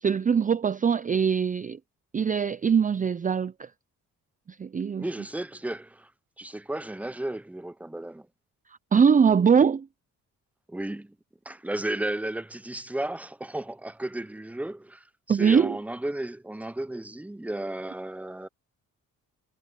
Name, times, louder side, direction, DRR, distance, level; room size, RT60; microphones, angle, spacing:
voice 1, 0.0-1.8 2.1-3.7 4.6-5.1 8.9-9.9 15.3-15.8, right 6 dB, 25° right, 0.5 m, -22 dB
voice 2, 5.0-6.1 6.4-8.3 10.7-11.1 11.5-15.0 15.3-18.5, right 1 dB, 5° right, 0.9 m, -34 dB
cardioid pair, 95°, 32 cm